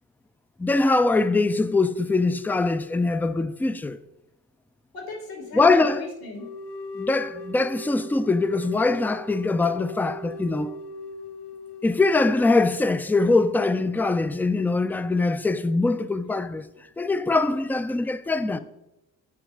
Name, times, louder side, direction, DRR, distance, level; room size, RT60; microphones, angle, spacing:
voice 1, 0.6-4.0 5.5-6.0 7.0-10.7 11.8-16.7 17.0-18.6, left 3 dB, 5° left, 0.3 m, -22 dB
voice 2, 4.9-6.4, left 3 dB, 70° left, 3.0 m, -36 dB
sound 1, 6.4-13.1, left 2 dB, 85° left, 1.0 m, -39 dB
9.3 x 4.3 x 5.0 m
supercardioid pair, 70°, 39 cm